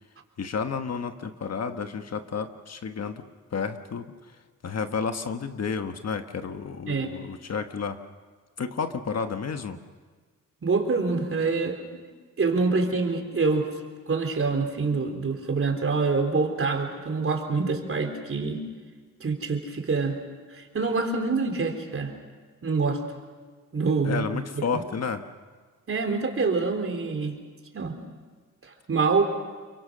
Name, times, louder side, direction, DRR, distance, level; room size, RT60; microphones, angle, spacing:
voice 1, 0.4-3.2 3.5-4.1 4.6-8.0 8.6-9.8 24.0-25.2, left 5 dB, 50° left, 7 dB, 1.4 m, -31 dB
voice 2, 10.6-12.0 12.4-13.7 14.1-18.6 19.2-20.2 20.5-22.1 22.6-23.0 23.7-24.8 25.9-27.4 27.7-28.0 28.6-29.2, right 4 dB, 40° right, 3 dB, 3.7 m, -26 dB
28.5 x 23.5 x 6.3 m, 1.5 s
cardioid pair, 115°, 32 cm